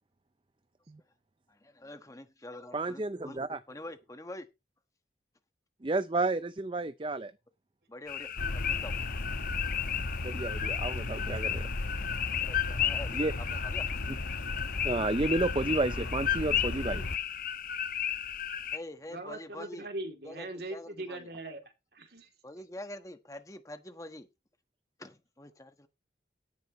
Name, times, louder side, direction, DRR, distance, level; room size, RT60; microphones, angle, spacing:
voice 1, 1.6-3.4 3.7-4.5 7.9-8.3 8.6-8.9 12.5-13.2 13.5-13.8 18.7-19.9 20.2-21.3 22.4-24.3 25.0-25.9, left 1 dB, 20° left, 1.3 m, -45 dB
voice 2, 2.7-3.6 5.8-7.3 10.2-11.7 13.1-13.3 14.8-17.0, right 2 dB, 30° right, 0.6 m, -31 dB
sound 1, 8.1-18.8, left 10 dB, 50° left, 0.9 m, -34 dB
sound 2, 8.4-17.2, left 2 dB, 85° left, 1.1 m, -36 dB
voice 3, 19.1-21.6 21.9-22.3, right 2 dB, 60° right, 2.9 m, -40 dB
17.0 x 10.5 x 3.1 m
head